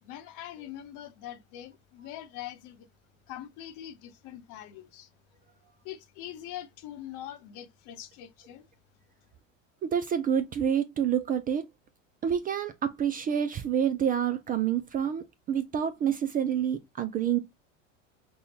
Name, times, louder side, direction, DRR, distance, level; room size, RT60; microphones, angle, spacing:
voice 1, 0.0-2.9 3.3-5.1 5.8-8.7, left 12 dB, 50° left, 0.9 m, -43 dB
voice 2, 9.8-11.7 12.2-17.4, right 8 dB, 25° right, 0.3 m, -28 dB
5.3 x 2.3 x 2.8 m
hypercardioid pair, 85°, 39 cm